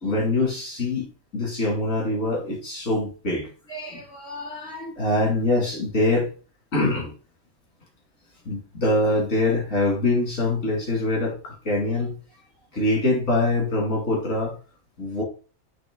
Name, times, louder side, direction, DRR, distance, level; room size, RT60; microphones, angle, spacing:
voice 1, 0.0-1.1 1.3-6.3 6.7-7.1 8.5-12.2 12.7-14.5 15.0-15.2, left 2 dB, 75° left, -1 dB, 2.6 m, -24 dB
8.8 x 3.1 x 3.6 m, 0.37 s
omnidirectional pair, 1.4 m